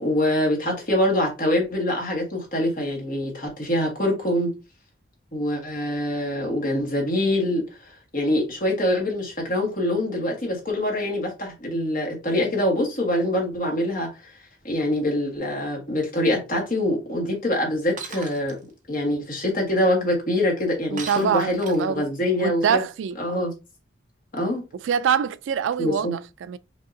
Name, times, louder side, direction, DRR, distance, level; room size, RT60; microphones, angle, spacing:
voice 1, 0.0-4.5 5.3-14.1 14.6-18.5 18.9-22.8 23.2-23.5 24.3-24.6 25.8-26.1, left 1 dB, 45° left, 1.5 m, -24 dB
Shatter, 18.0-18.5 21.0-22.0, right 5 dB, 40° right, 0.8 m, -37 dB
voice 2, 20.9-22.1 22.4-23.2 24.8-26.6, right 7 dB, 75° right, 0.3 m, -25 dB
5.3 x 2.8 x 2.6 m
head